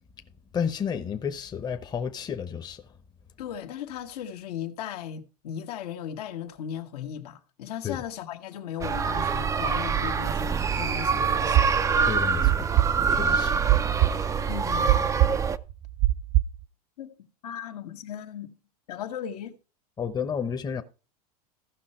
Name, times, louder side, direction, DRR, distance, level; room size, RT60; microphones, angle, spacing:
voice 1, 0.5-2.8 7.8-8.0 12.0-12.7 13.1-13.6 20.0-20.8, left 7 dB, 20° left, 0.8 m, -31 dB
voice 2, 3.4-11.7 14.5-15.1 17.0-18.5 18.9-19.6, left 9 dB, 80° left, 1.5 m, -37 dB
sound 1, 8.8-15.6, right 6 dB, 15° right, 0.5 m, -25 dB
sound 2, 11.5-16.6, right 15 dB, 50° right, 0.7 m, -22 dB
15.0 x 5.7 x 4.3 m
supercardioid pair, 120°, 20 cm